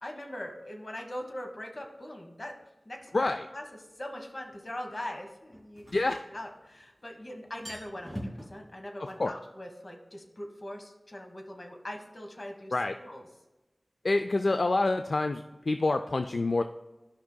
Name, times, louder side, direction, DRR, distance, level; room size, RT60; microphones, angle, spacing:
voice 1, 0.0-2.5 2.8-3.6 3.9-5.9 6.3-13.3, left 1 dB, 50° left, 3 dB, 1.3 m, -41 dB
sound 1, 3.1-3.2 5.5-6.8 7.1-7.2 7.5-8.5, equal, 15° left, 2.1 m, -41 dB
voice 2, 14.0-16.6, left 2 dB, 70° left, 8 dB, 0.3 m, -27 dB
13.0 x 5.5 x 2.2 m, 1.1 s
wide cardioid pair, 50°, 0 cm